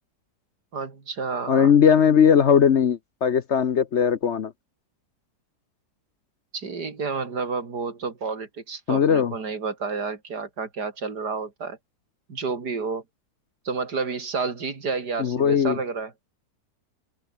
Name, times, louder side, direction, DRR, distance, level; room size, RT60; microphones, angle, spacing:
voice 1, 0.7-1.7 6.5-11.8 12.3-13.0 13.7-16.1, right 4 dB, 85° right, 3.5 m, -30 dB
voice 2, 1.5-4.5 8.9-9.3 15.2-15.8, left 7 dB, 50° left, 1.0 m, -19 dB
omnidirectional pair, 1.7 m